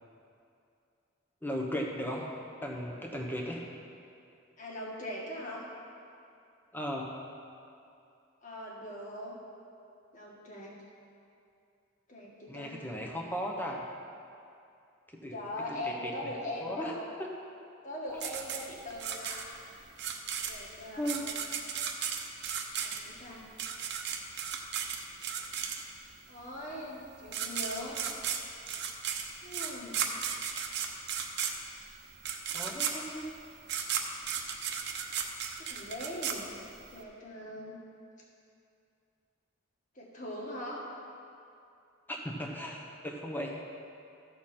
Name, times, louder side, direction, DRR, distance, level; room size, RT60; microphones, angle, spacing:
voice 1, 1.4-2.3 2.6-3.6 6.7-7.2 12.5-13.8 15.1-15.4 15.7-16.3 16.6-16.9 17.2-17.3 18.1-18.2 21.0-21.3 32.5-33.3 42.1-43.6, equal, 10° left, -1 dB, 1.1 m, -36 dB
voice 2, 4.6-5.7 8.4-9.4 10.1-10.7 12.1-12.8 15.3-17.0 17.8-19.5 20.4-21.2 22.8-23.5 26.3-28.0 29.4-30.1 34.4-35.0 35.6-37.8 39.9-40.9, left 1 dB, 40° left, -4 dB, 1.9 m, -41 dB
sound 1, 18.2-26.1 27.0-27.1 27.3-37.0, right 7 dB, 55° right, 0.9 m, -35 dB
14.5 x 6.9 x 4.4 m, 2.5 s
head